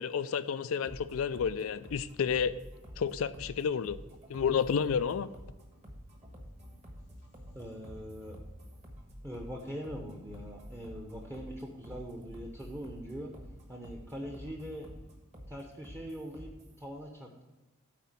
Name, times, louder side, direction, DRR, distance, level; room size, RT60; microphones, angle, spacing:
voice 1, 0.0-2.5 3.0-4.0 4.3-5.3, left 7 dB, 75° left, 14 dB, 0.4 m, -30 dB
sound 1, 0.8-16.8, equal, 35° right, 1.4 m, -49 dB
voice 2, 7.5-8.4 9.2-13.3 13.7-14.9 15.5-16.5 16.8-17.4, equal, 15° right, 1 dB, 0.8 m, -42 dB
9.3 x 4.3 x 7.4 m, 1.1 s
head